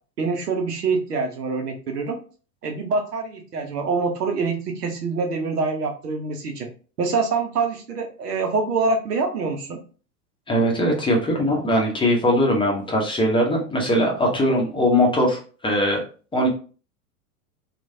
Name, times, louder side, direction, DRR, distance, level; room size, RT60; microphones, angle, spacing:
voice 1, 0.2-2.2 2.6-6.7 7.0-9.8, right 4 dB, 80° right, 4 dB, 0.9 m, -25 dB
voice 2, 10.5-16.0 16.3-16.5, equal, 10° left, -1 dB, 0.7 m, -20 dB
3.0 x 2.5 x 2.6 m, 0.38 s
hypercardioid pair, 100°, 46 cm